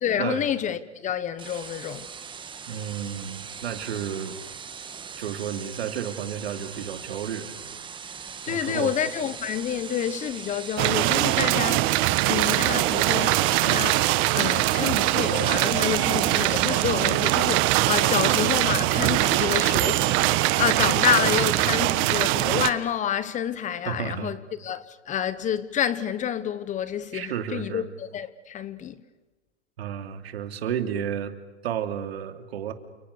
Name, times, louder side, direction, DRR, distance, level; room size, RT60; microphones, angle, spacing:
voice 1, 0.0-2.1 8.5-29.0, left 9 dB, 20° left, 1.2 m, -28 dB
sound 1, 1.4-16.8, right 6 dB, 15° right, 1.7 m, -40 dB
voice 2, 2.7-4.4 5.2-7.5 8.5-8.9 20.8-21.1 23.9-24.3 27.1-27.8 29.8-31.3 31.6-32.7, right 9 dB, 65° right, 2.9 m, -32 dB
sound 2, 10.8-22.7, right 17 dB, 35° right, 1.4 m, -22 dB
30.0 x 29.0 x 6.7 m
hypercardioid pair, 115°, 33 cm